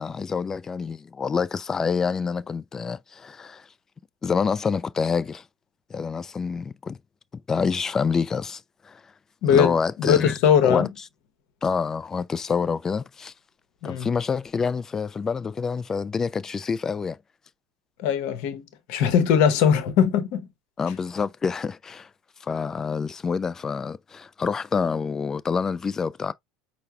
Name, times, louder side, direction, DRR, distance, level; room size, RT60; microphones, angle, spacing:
voice 1, 0.0-3.7 4.2-5.4 5.9-7.0 7.5-9.0 9.5-10.4 10.6-10.9 11.6-13.3 13.8-17.2 20.8-22.1 22.4-26.3, left 5 dB, 25° left, 0.3 m, -27 dB
voice 2, 9.4-10.9 13.8-14.1 18.0-18.6 18.9-20.5, left 8 dB, 55° left, 0.8 m, -20 dB
5.6 x 2.1 x 3.4 m
figure-of-eight pair, 70°, 2 cm